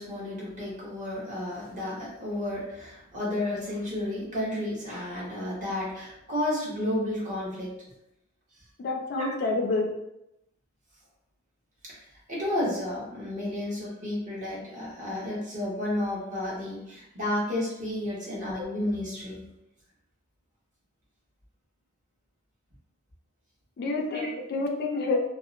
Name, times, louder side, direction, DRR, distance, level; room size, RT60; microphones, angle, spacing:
voice 1, 0.0-7.7 9.1-9.3 11.8-12.0 12.3-19.4 24.1-24.3, left 1 dB, 40° right, -5 dB, 0.9 m, -32 dB
voice 2, 8.8-9.9 23.8-25.2, left 3 dB, 50° left, 2 dB, 0.4 m, -28 dB
2.6 x 2.0 x 2.4 m, 0.85 s
head